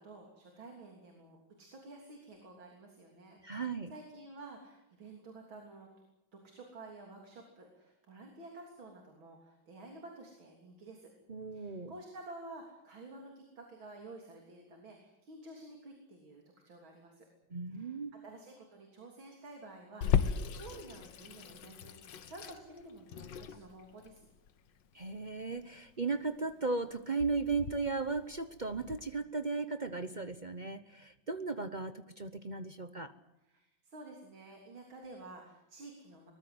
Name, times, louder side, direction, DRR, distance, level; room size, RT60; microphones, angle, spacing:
voice 1, 0.0-6.0 6.3-11.1 11.5-17.3 17.7-18.0 18.2-24.3 33.5-36.3, right 2 dB, 80° right, 2 dB, 4.1 m, -51 dB
voice 2, 3.4-3.9 11.3-11.9 17.5-18.1 24.9-33.1, right 4 dB, 45° right, 11 dB, 0.6 m, -36 dB
Water tap faucet / Sink (filling or washing), 20.0-29.0, left 7 dB, 70° left, 1.8 m, -37 dB
24.0 x 20.5 x 7.9 m, 0.92 s
omnidirectional pair, 2.2 m